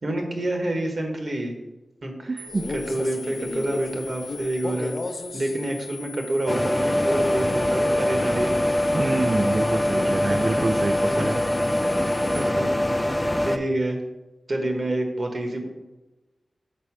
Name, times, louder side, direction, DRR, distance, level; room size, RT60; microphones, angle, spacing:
voice 1, 0.0-1.5 2.0-2.4 2.7-5.0 5.3-8.6 10.0-10.9 11.2-11.3 12.3-12.7 13.0-13.1 13.4-14.0 14.5-15.7, right 1 dB, 60° right, 3 dB, 1.4 m, -28 dB
voice 2, 2.3-2.7 8.9-11.4, right 2 dB, 45° right, 8 dB, 0.3 m, -26 dB
sound 1, 2.4-12.4, left 5 dB, 80° right, 1.1 m, -42 dB
Male speech man speaking, 2.5-5.6 6.9-7.6, left 2 dB, 55° left, 0.7 m, -35 dB
sound 2, 6.5-13.6, left 1 dB, 15° left, 0.5 m, -23 dB
6.7 x 4.3 x 6.1 m, 1.1 s
wide cardioid pair, 75°, 0 cm